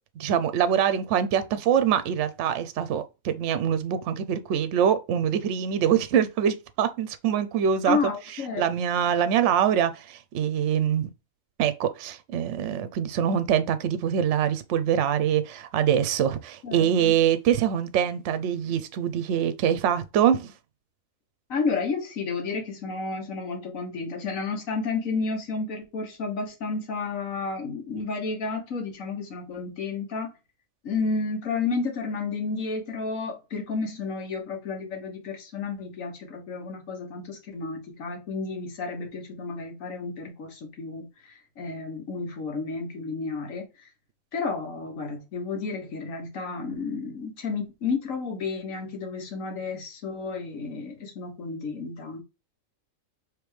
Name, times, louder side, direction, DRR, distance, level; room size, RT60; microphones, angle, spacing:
voice 1, 0.2-8.0 8.3-11.1 11.6-20.5, right 9 dB, 65° right, 0.9 m, -24 dB
voice 2, 7.9-8.7 16.6-17.1 21.5-30.3 30.8-43.9 44.3-52.2, left 4 dB, 70° left, 1.6 m, -31 dB
5.1 x 3.2 x 3.1 m
omnidirectional pair, 1.4 m